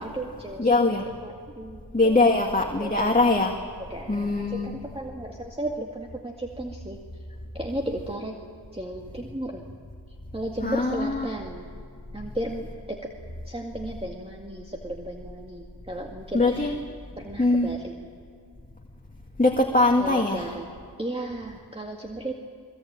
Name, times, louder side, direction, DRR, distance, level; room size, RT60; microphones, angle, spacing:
voice 1, 0.0-2.4 2.8-3.3 3.9-7.0 7.5-8.4 8.7-9.6 10.3-11.7 12.1-13.1 13.5-16.7 17.2-18.0 20.0-20.7 21.0-22.3, right 1 dB, 15° right, 1 dB, 2.1 m, -35 dB
voice 2, 0.6-1.1 1.9-3.6 4.1-4.8 10.6-11.3 16.3-16.8 17.4-17.7 19.4-20.5, left 2 dB, 20° left, 1 dB, 2.0 m, -22 dB
22.5 x 22.5 x 8.9 m, 2.3 s
cardioid pair, 50°, 42 cm